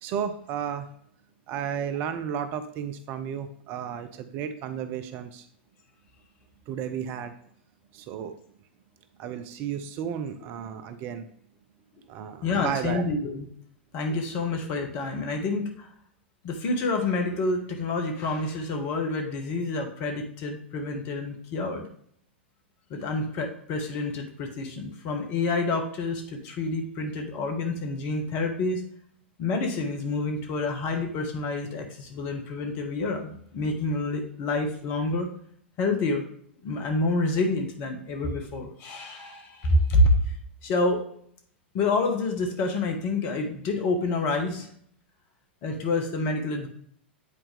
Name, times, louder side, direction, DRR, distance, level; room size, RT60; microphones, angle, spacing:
voice 1, 0.0-0.9 1.5-5.5 6.7-7.3 7.9-8.3 9.2-11.3 12.1-13.1, right 8 dB, 35° right, 10 dB, 0.5 m, -33 dB
voice 2, 12.4-13.5 13.9-15.9 16.4-21.8 22.9-28.8 29.4-35.3 35.8-36.2 36.6-40.4 40.6-41.0 41.7-44.7 45.6-46.7, left 2 dB, 40° left, 4 dB, 1.3 m, -28 dB
8.3 x 4.3 x 3.3 m, 0.63 s
figure-of-eight pair, 95°, 6 cm